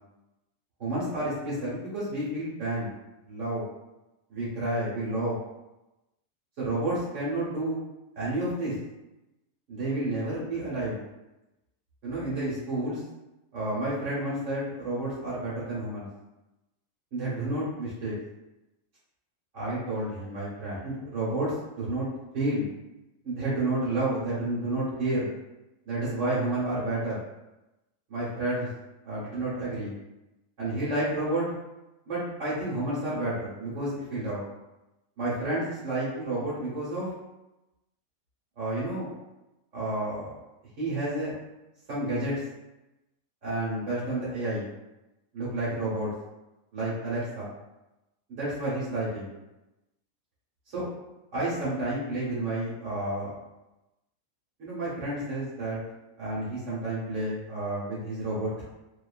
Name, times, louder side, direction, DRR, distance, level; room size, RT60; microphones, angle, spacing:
voice 1, 0.8-2.9 3.2-3.6 4.3-5.4 6.6-7.8 8.2-8.7 9.7-11.0 12.0-13.0 13.5-16.1 17.1-18.1 19.5-22.1 22.3-22.7 23.2-25.3 25.8-27.2 28.1-28.7 29.0-29.9 30.6-31.5 32.1-34.4 35.2-37.1 38.6-39.1 39.7-40.3 40.8-41.3 41.9-42.3 43.4-44.7 45.3-46.1 46.7-47.5 48.3-49.3 50.7-50.8 51.3-53.3 54.6-55.8 56.2-58.6, right 1 dB, 65° right, -9 dB, 1.2 m, -30 dB
2.7 x 2.2 x 2.3 m, 0.96 s
omnidirectional pair, 1.4 m